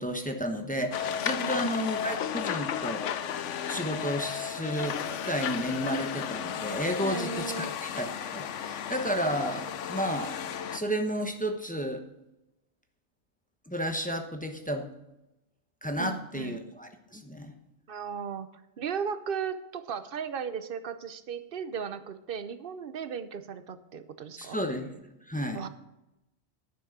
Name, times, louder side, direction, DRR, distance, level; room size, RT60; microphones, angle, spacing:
voice 1, 0.0-3.1 3.7-10.4 10.7-12.0 13.7-14.9 15.8-17.5 24.4-25.6, equal, 10° left, 5 dB, 0.9 m, -32 dB
sound 1, 0.9-10.8, left 8 dB, 90° left, 1.0 m, -34 dB
voice 2, 1.3-1.7 7.0-7.7 16.0-16.6 17.9-18.5 18.8-24.6 25.5-25.7, right 6 dB, 55° right, 11 dB, 0.9 m, -36 dB
11.0 x 6.3 x 6.6 m, 0.94 s
omnidirectional pair, 1.2 m